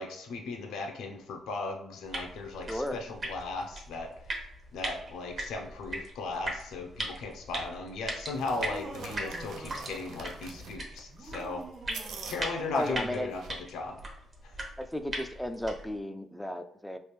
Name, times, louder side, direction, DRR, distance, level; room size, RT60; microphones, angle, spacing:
voice 1, 0.0-4.1 4.7-11.6 12.3-13.4 13.7-14.0, left 3 dB, 80° left, 3 dB, 0.6 m, -37 dB
sound 1, 2.0-16.0, right 1 dB, 40° right, 0.8 m, -40 dB
voice 2, 2.7-3.0 12.7-13.3 14.8-17.0, equal, ahead, 8 dB, 0.3 m, -34 dB
sound 2, 8.3-13.6, right 5 dB, 75° right, 0.4 m, -46 dB
Laughter, 8.5-10.6 11.1-13.4, right 2 dB, 60° right, 1.1 m, -46 dB
3.2 x 2.5 x 3.2 m, 0.71 s
cardioid pair, 90°, 0 cm